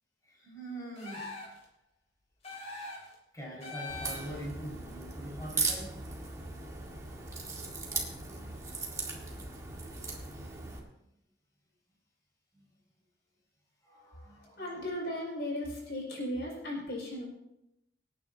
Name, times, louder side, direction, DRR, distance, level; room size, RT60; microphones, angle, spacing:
voice 1, 0.3-1.3 3.3-5.9 8.3-8.5 12.5-12.6 13.8-14.6, right 1 dB, 20° left, -5 dB, 5.3 m, -44 dB
sound 1, 1.0-1.6 2.4-3.1 3.6-4.5, left 3 dB, 40° left, 3.5 m, -42 dB
Crack, 3.9-10.8, right 3 dB, 20° right, 1.9 m, -38 dB
voice 2, 14.6-17.2, left 1 dB, 70° left, -3 dB, 5.9 m, -36 dB
26.5 x 9.4 x 2.8 m, 0.87 s
head